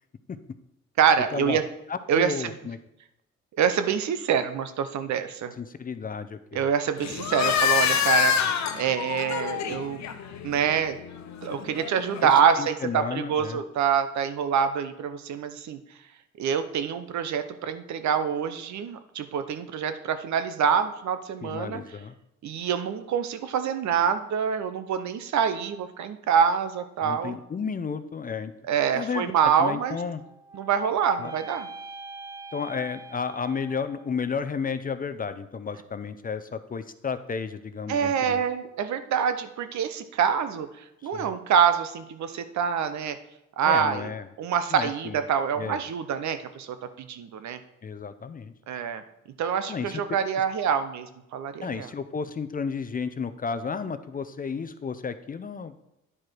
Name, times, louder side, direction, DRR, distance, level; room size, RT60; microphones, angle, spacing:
voice 1, 1.0-1.6 2.1-2.5 3.6-5.5 6.5-8.3 8.7-10.0 10.4-11.0 11.4-15.8 16.4-21.8 22.4-27.4 28.7-30.0 30.5-31.7 37.9-40.7 41.0-43.2 43.6-44.1 44.4-47.6 48.7-49.0 49.4-51.9, right 7 dB, 65° right, 10 dB, 0.8 m, -26 dB
voice 2, 1.9-2.8 5.6-6.7 12.2-12.3 12.6-13.6 21.4-22.1 27.0-28.5 28.9-30.2 31.2-31.3 32.5-38.4 41.1-41.3 43.6-44.3 44.7-45.2 45.6-45.8 47.8-48.5 49.7-50.2 51.6-55.7, left 5 dB, 30° left, 11 dB, 0.5 m, -32 dB
sound 1, 7.0-12.4, left 7 dB, 65° left, 0.9 m, -27 dB
sound 2, 30.1-34.4, right 3 dB, 10° right, 1.2 m, -43 dB
9.9 x 4.8 x 4.5 m, 0.87 s
cardioid pair, 90°, 30 cm